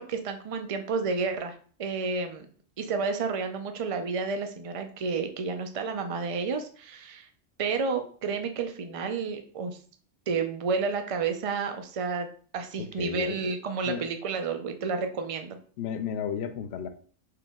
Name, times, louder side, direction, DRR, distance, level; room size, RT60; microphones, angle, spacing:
voice 1, 0.0-2.5 2.8-7.3 7.6-9.8 10.3-12.3 12.5-15.6, right 4 dB, 45° right, 6 dB, 0.4 m, -31 dB
voice 2, 12.8-13.5 13.9-14.0 15.8-16.9, left 7 dB, 65° left, 9 dB, 0.8 m, -33 dB
4.7 x 3.0 x 3.5 m, 0.43 s
omnidirectional pair, 1.3 m